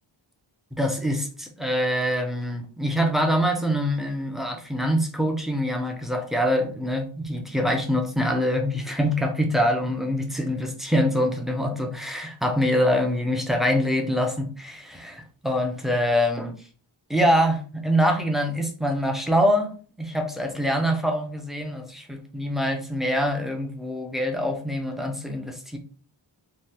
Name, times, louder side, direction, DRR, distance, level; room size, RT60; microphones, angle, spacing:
voice 1, 0.7-16.6 17.1-25.8, equal, ahead, 3 dB, 0.3 m, -24 dB
3.2 x 2.2 x 2.8 m, 0.40 s
wide cardioid pair, 135°, 49 cm